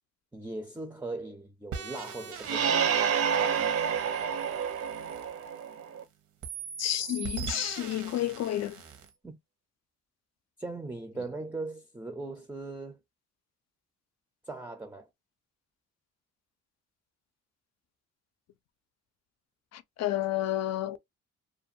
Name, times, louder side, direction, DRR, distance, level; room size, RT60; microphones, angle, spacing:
voice 1, 0.3-3.0 9.2-9.4 10.6-13.0 14.5-15.1, right 2 dB, 5° right, 0.5 m, -39 dB
sound 1, 1.7-6.0 6.4-9.1, right 6 dB, 75° right, 0.9 m, -42 dB
sound 2, 2.4-6.0, right 7 dB, 50° right, 0.6 m, -28 dB
voice 2, 6.8-8.7 19.7-21.0, left 13 dB, 60° left, 0.5 m, -30 dB
2.5 x 2.2 x 2.6 m
cardioid pair, 90°, 30 cm